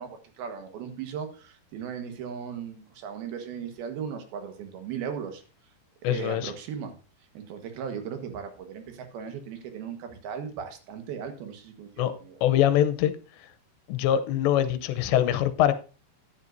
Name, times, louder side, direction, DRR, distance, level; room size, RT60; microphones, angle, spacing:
voice 1, 0.0-5.4 6.0-7.0 7.3-12.4, right 7 dB, 70° right, 3.1 m, -37 dB
voice 2, 6.0-6.5 12.0-12.1 12.4-13.1 13.9-15.7, left 11 dB, 85° left, 3.0 m, -23 dB
14.0 x 10.0 x 2.6 m
omnidirectional pair, 5.0 m